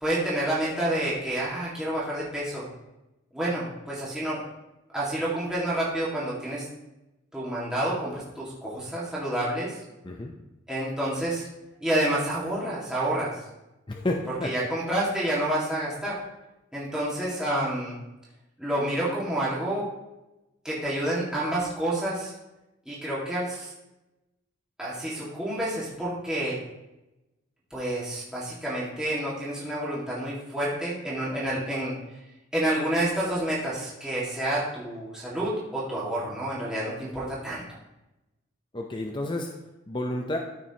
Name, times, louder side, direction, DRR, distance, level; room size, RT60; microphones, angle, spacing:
voice 1, 0.0-2.7 3.3-4.4 4.9-6.6 7.3-9.8 10.7-11.4 11.8-13.4 14.4-16.2 16.7-18.0 18.6-19.9 20.6-22.3 22.9-23.7 24.8-26.6 27.7-32.0 32.5-37.6, right 1 dB, 5° right, -8 dB, 1.9 m, -29 dB
voice 2, 13.9-14.5 38.7-39.5 39.9-40.4, left 1 dB, 25° left, 2 dB, 0.6 m, -30 dB
13.5 x 5.9 x 2.9 m, 0.97 s
head